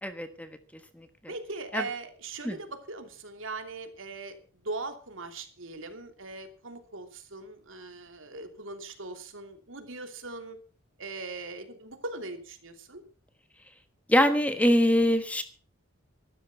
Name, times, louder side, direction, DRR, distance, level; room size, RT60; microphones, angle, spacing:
voice 1, 0.0-0.5 1.0-1.1 1.7-1.8 2.4-2.6 14.1-15.4, equal, 5° left, 9 dB, 1.3 m, -23 dB
voice 2, 1.3-4.4 4.6-10.6 11.0-13.0, right 3 dB, 70° right, 7 dB, 2.9 m, -40 dB
14.5 x 12.5 x 5.9 m, 0.39 s
head